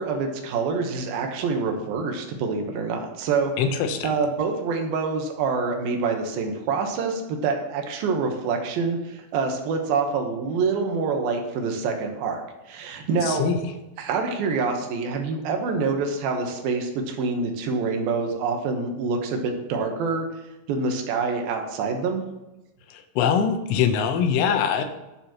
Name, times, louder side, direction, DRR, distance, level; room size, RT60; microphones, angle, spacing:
voice 1, 0.0-3.5 4.0-13.4 14.0-20.3 20.7-22.2, right 4 dB, 70° right, 3 dB, 2.4 m, -26 dB
voice 2, 3.6-4.2 13.2-13.6 22.9-24.8, left 7 dB, 85° left, 6 dB, 3.5 m, -23 dB
19.5 x 7.0 x 3.0 m, 1.0 s
omnidirectional pair, 5.7 m